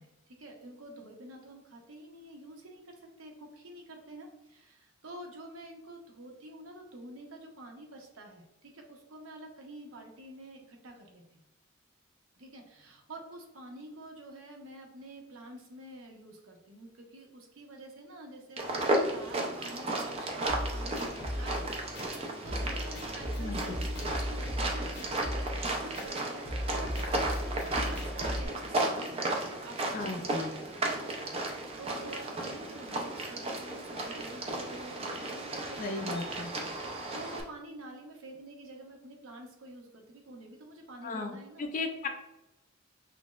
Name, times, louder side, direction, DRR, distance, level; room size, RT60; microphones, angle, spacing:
voice 1, 0.0-11.5 12.3-21.7 21.9-31.1 31.8-36.2 37.1-41.7 42.0-42.1, right 1 dB, 75° right, 2 dB, 0.7 m, -48 dB
sound 1, 18.6-37.4, right 2 dB, 30° right, 0.5 m, -34 dB
sound 2, 20.5-28.4, equal, 55° left, 0.8 m, -37 dB
voice 2, 23.4-23.8 29.9-30.5 35.8-36.5 41.0-42.1, left 3 dB, 40° left, 6 dB, 0.4 m, -36 dB
5.8 x 2.0 x 2.3 m, 0.95 s
head